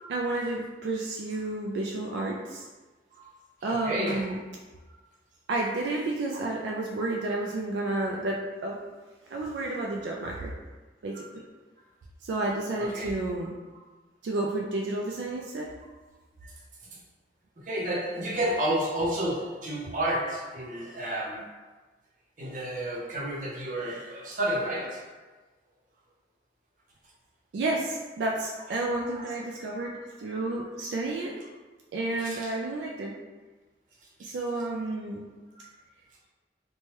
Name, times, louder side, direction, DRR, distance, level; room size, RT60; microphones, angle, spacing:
voice 1, 0.1-2.7 3.6-4.4 5.5-8.8 9.3-10.5 11.0-11.1 12.2-13.6 14.2-15.7 27.5-29.9 30.2-31.3 31.9-33.1 34.2-35.3, right 2 dB, 80° right, -1 dB, 0.3 m, -31 dB
voice 2, 3.7-4.3 12.8-13.1 16.4-16.5 17.6-21.5 22.4-25.1 29.1-29.4 29.8-29.9 32.1-32.5 34.2-34.3, right 1 dB, 45° right, -4 dB, 0.7 m, -31 dB
3.1 x 2.2 x 2.9 m, 1.2 s
head